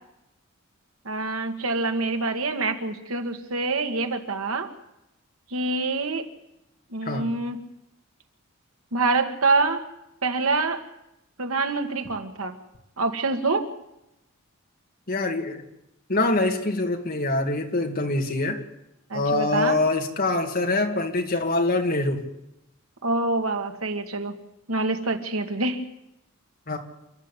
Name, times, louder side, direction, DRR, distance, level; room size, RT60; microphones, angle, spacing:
voice 1, 1.1-4.7 5.5-6.3 6.9-7.6 8.9-9.8 10.2-10.8 11.4-12.6 13.0-13.7 19.1-19.8 23.0-24.3 24.7-25.8, right 3 dB, 90° right, 6 dB, 2.0 m, -26 dB
voice 2, 15.1-15.6 16.1-18.6 19.1-22.3 26.7-26.8, left 2 dB, 45° left, 4 dB, 2.3 m, -24 dB
29.0 x 12.5 x 8.3 m, 0.89 s
head